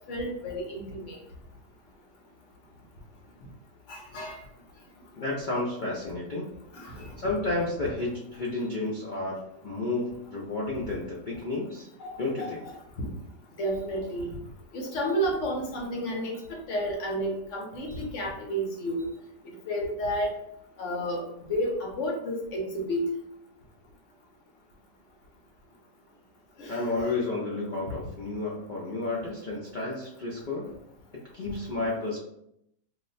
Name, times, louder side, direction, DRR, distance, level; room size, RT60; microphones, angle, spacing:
voice 1, 0.1-1.2 3.9-4.4 6.7-7.1 12.0-12.7 13.0-13.1 13.6-14.3 14.7-19.1 19.7-20.3 20.8-23.1 26.6-27.2 27.9-28.0, equal, 60° left, -1 dB, 0.9 m, -31 dB
voice 2, 5.1-6.5 6.9-11.9 12.2-12.6 26.7-30.7 31.1-32.2, left 2 dB, 90° left, -5 dB, 0.4 m, -31 dB
2.7 x 2.1 x 3.8 m, 0.76 s
omnidirectional pair, 1.7 m